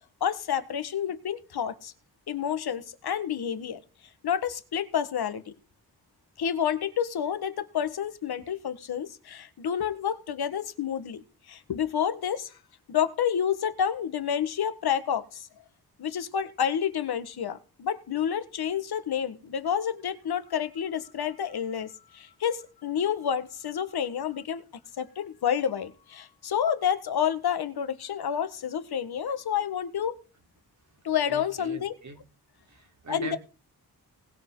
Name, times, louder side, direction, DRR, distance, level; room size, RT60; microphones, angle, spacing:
voice 1, 0.2-1.9 2.3-3.8 4.2-5.5 6.4-11.2 11.5-12.6 12.9-15.5 16.0-24.6 25.0-30.1 31.0-31.9 33.1-33.4, left 8 dB, 85° left, 11 dB, 1.6 m, -29 dB
voice 2, 31.3-32.2 32.7-33.4, right 3 dB, 50° right, 5 dB, 3.6 m, -41 dB
19.5 x 7.2 x 3.9 m, 0.35 s
wide cardioid pair, 120°, 37 cm